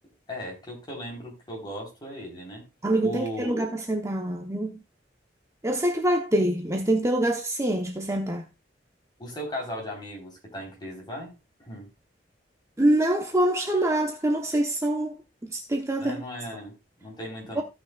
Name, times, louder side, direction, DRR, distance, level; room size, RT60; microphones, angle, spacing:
voice 1, 0.3-2.7 3.0-3.7 9.2-11.3 11.6-11.9 16.0-17.6, equal, 25° left, 3.8 m, -37 dB
voice 2, 2.8-4.8 5.6-8.4 12.8-15.2 15.4-16.2 17.6-17.7, right 1 dB, 15° right, 0.9 m, -25 dB
15.5 x 6.2 x 2.4 m
head